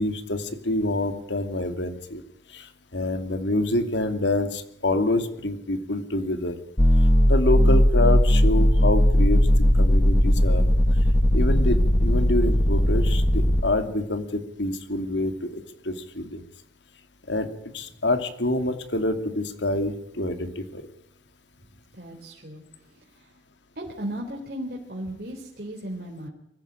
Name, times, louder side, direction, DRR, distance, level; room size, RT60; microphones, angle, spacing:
voice 1, 0.0-2.2 2.5-6.5 7.3-9.5 9.8-10.7 11.3-16.4 17.3-17.5 17.7-20.8, left 1 dB, 80° left, 9 dB, 2.6 m, -26 dB
sound 1, 6.8-13.6, equal, 25° left, 0.9 m, -18 dB
voice 2, 21.9-22.6 22.9-23.3 23.8-26.3, right 1 dB, 55° right, -1 dB, 3.8 m, -36 dB
23.5 x 15.0 x 8.9 m, 0.81 s
head